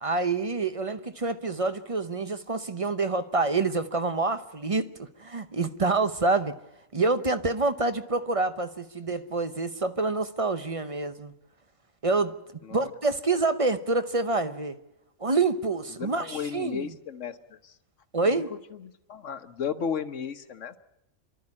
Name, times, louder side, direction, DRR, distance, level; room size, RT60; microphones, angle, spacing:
voice 1, 0.0-6.5 6.9-11.3 12.0-12.4 12.7-14.8 15.2-16.9 18.1-18.5, right 3 dB, 30° right, 0.8 m, -27 dB
voice 2, 16.0-17.7 18.2-18.4 18.8-20.8, left 7 dB, 65° left, 1.4 m, -34 dB
27.5 x 12.5 x 9.7 m
omnidirectional pair, 1.4 m